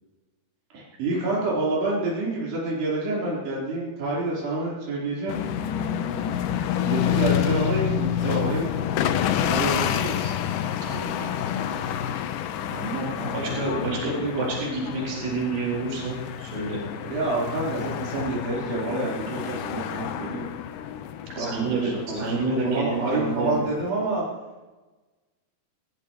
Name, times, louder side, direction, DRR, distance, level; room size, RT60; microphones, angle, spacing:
voice 1, 0.7-5.4 6.8-8.8 9.4-10.4 12.7-13.9 14.2-14.5 17.0-20.4 21.4-24.2, right 2 dB, 85° right, -6 dB, 6.2 m, -28 dB
sound 1, 5.3-23.9, left 9 dB, 75° left, 2.1 m, -29 dB
voice 2, 10.8-11.7 13.3-16.8 21.4-23.6, right 3 dB, 65° right, -2 dB, 6.4 m, -29 dB
21.0 x 18.0 x 3.1 m, 1.2 s
omnidirectional pair, 4.7 m